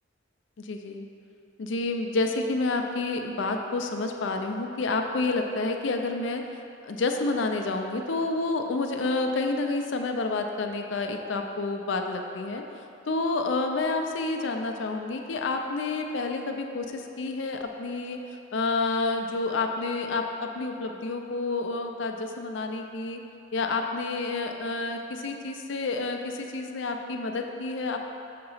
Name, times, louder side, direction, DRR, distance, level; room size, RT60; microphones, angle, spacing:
voice 1, 0.6-1.1 1.6-6.4 6.8-12.6 13.1-18.2 18.5-23.2 23.5-28.0, left 3 dB, 65° left, 4 dB, 0.4 m, -29 dB
6.5 x 2.9 x 5.5 m, 2.7 s
head